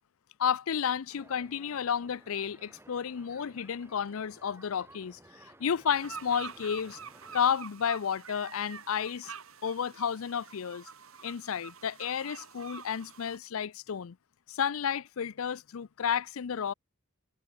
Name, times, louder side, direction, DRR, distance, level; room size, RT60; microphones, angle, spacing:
voice 1, 0.4-5.2 5.6-7.0 7.3-9.3 9.6-10.9 11.2-14.2 14.5-16.7, left 7 dB, 75° left, 0.5 m, -32 dB
sound 1, 1.1-7.5, right 1 dB, 10° right, 3.0 m, -57 dB
sound 2, 5.9-13.4, right 6 dB, 75° right, 2.7 m, -47 dB
head